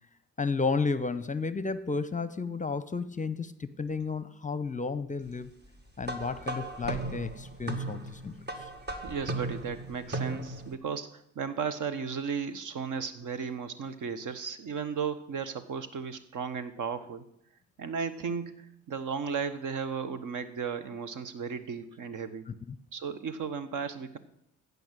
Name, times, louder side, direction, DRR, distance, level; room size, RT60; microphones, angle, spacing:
voice 1, 0.4-5.6 6.0-8.7 22.5-22.8, left 4 dB, 20° left, 0.8 m, -32 dB
sound 1, 6.0-10.7, right 2 dB, 30° right, 1.7 m, -36 dB
voice 2, 9.0-17.2 17.8-22.5 22.9-24.2, right 6 dB, 60° right, 1.3 m, -35 dB
15.5 x 5.5 x 7.6 m
hypercardioid pair, 55°, 36 cm